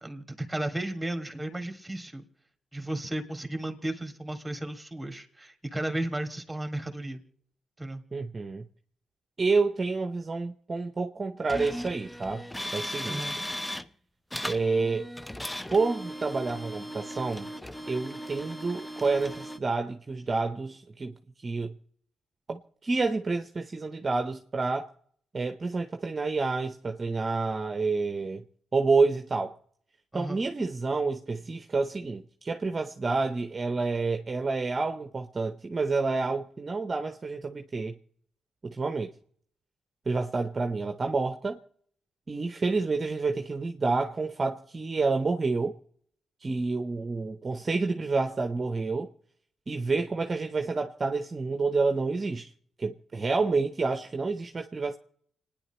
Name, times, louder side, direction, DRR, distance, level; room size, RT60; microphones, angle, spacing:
voice 1, 0.0-2.2 2.7-7.2 7.8-8.0 13.0-13.4 30.1-30.4, right 1 dB, 10° right, 2.4 m, -34 dB
voice 2, 8.1-8.6 9.4-12.5 12.7-13.2 14.4-15.1 15.7-17.5 17.9-21.1 21.4-21.7 22.5-24.9 25.3-28.4 28.7-29.6 30.1-37.9 38.6-39.1 40.1-41.6 42.3-45.8 46.4-49.1 49.7-52.5 52.8-55.0, right 3 dB, 40° right, 0.9 m, -29 dB
sound 1, 11.5-13.9 14.3-19.6, equal, 10° left, 0.8 m, -37 dB
30.0 x 10.0 x 3.1 m
hypercardioid pair, 45°, 0 cm